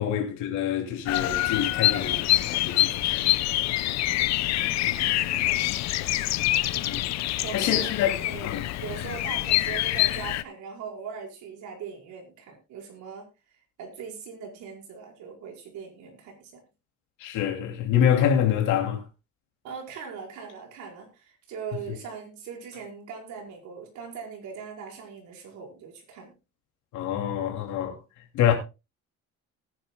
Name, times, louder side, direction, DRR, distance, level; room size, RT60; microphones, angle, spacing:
voice 1, 0.0-3.3 3.9-4.0 4.8-5.5 6.8-8.6 17.2-19.0 26.9-28.0 28.3-28.5, left 9 dB, 85° left, 2.7 m, -27 dB
Bird vocalization bird call bird song, 1.1-10.4, left 15 dB, 65° left, 0.7 m, -25 dB
voice 2, 4.6-5.9 6.7-7.9 8.2-8.5 8.8-13.3 13.8-16.6 19.6-26.3 27.7-28.0, right 6 dB, 75° right, 5.1 m, -41 dB
19.5 x 10.5 x 2.3 m
cardioid pair, 140°, 29 cm